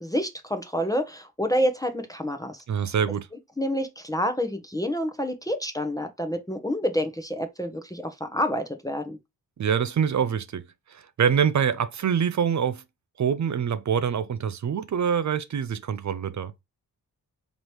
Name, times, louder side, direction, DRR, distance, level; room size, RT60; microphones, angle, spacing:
voice 1, 0.0-2.9 3.6-9.2, equal, 10° left, 0.8 m, -28 dB
voice 2, 2.7-3.3 9.6-10.6 10.9-12.8 13.2-16.5, right 7 dB, 50° right, 0.5 m, -25 dB
4.0 x 3.0 x 3.1 m
cardioid pair, 60°, 38 cm